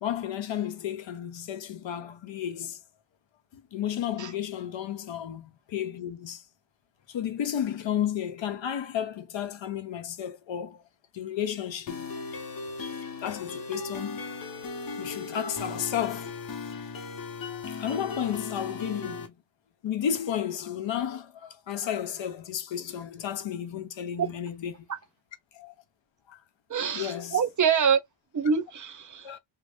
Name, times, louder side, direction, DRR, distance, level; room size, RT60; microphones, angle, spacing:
voice 1, 0.0-2.8 3.5-6.4 7.1-10.8 11.1-12.1 13.2-14.2 15.0-16.4 17.7-19.3 19.8-24.8 25.5-25.7 26.3-26.4 26.9-27.4 29.2-29.4, left 9 dB, 85° left, 0.7 m, -32 dB
sound 1, 11.9-19.3, left 4 dB, 50° left, 0.7 m, -37 dB
voice 2, 26.7-28.0 28.3-29.3, right 7 dB, 45° right, 0.6 m, -25 dB
2.5 x 2.0 x 3.4 m
wide cardioid pair, 120°, 44 cm